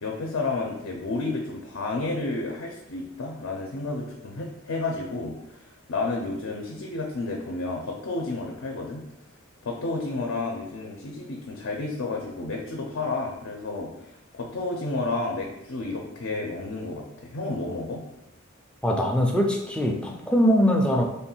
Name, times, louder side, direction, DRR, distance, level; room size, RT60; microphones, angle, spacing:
voice 1, 0.0-9.0 9.6-18.0, left 3 dB, 75° left, 0 dB, 0.5 m, -31 dB
voice 2, 18.8-21.0, equal, 5° left, 1 dB, 0.4 m, -22 dB
3.2 x 2.3 x 4.3 m, 0.86 s
head